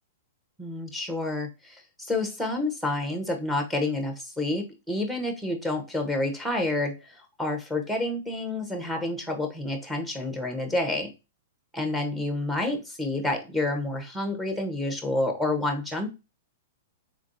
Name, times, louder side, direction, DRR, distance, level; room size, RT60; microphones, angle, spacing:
voice 1, 0.6-11.1 11.7-16.1, left 2 dB, 5° right, 4 dB, 0.9 m, -29 dB
3.7 x 3.3 x 2.6 m, 0.27 s
hypercardioid pair, 130°, 0 cm